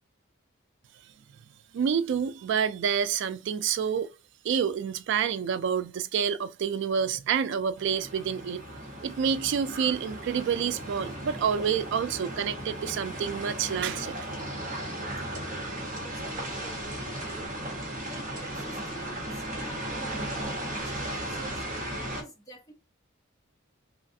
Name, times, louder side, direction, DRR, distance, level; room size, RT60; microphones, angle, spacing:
voice 1, 1.7-4.1 4.4-8.6 9.0-14.2, right 7 dB, 60° right, 0.3 m, -28 dB
sound 1, 7.8-22.2, right 1 dB, 40° right, 1.0 m, -36 dB
voice 2, 15.8-17.5 18.1-21.6 22.1-22.7, right 1 dB, 20° left, 0.7 m, -48 dB
3.1 x 2.3 x 2.6 m
head